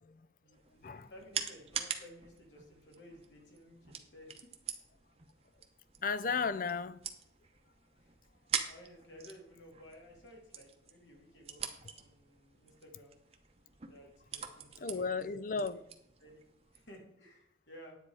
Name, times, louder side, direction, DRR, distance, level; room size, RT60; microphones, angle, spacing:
voice 1, 0.4-4.4 8.0-8.1 8.6-13.1 13.9-15.2 15.5-15.8 16.2-16.4 16.7-18.0, equal, 85° left, 2.9 m, -55 dB
sound 1, 0.5-16.9, right 7 dB, 35° right, 0.9 m, -45 dB
voice 2, 6.0-7.0 14.8-15.8, left 5 dB, 45° left, 0.4 m, -34 dB
10.0 x 8.4 x 4.8 m
head